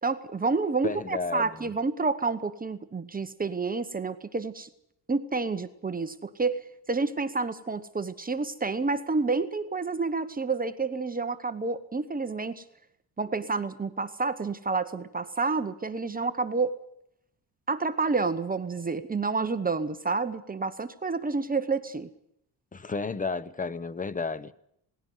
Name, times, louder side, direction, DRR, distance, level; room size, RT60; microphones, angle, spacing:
voice 1, 0.0-4.7 5.1-6.6 6.9-12.6 13.2-16.7 17.7-22.1, right 4 dB, 20° right, 1.0 m, -29 dB
voice 2, 0.8-1.5 22.7-24.5, left 4 dB, 20° left, 0.8 m, -32 dB
19.0 x 16.5 x 9.3 m
cardioid pair, 135°, 43 cm